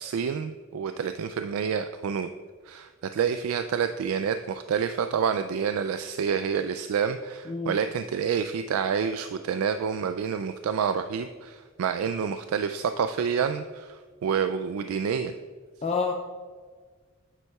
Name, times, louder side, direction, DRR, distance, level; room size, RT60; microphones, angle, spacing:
voice 1, 0.0-2.3 2.7-15.3, right 7 dB, 85° right, 9 dB, 0.3 m, -28 dB
voice 2, 15.8-16.1, left 4 dB, 30° left, 1 dB, 0.4 m, -27 dB
9.1 x 7.6 x 2.3 m, 1.5 s
head